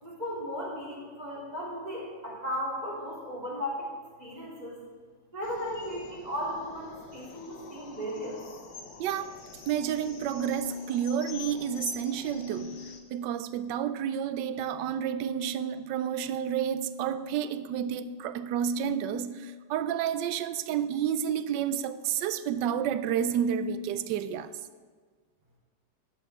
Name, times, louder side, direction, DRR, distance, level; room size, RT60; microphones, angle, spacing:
voice 1, 0.0-4.8 5.3-8.4, equal, 20° right, -4 dB, 3.1 m, -36 dB
sound 1, 5.4-13.0, left 6 dB, 80° left, 1.8 m, -46 dB
voice 2, 9.0-24.5, right 8 dB, 75° right, 13 dB, 1.2 m, -30 dB
13.5 x 10.5 x 3.5 m, 1.5 s
omnidirectional pair, 2.0 m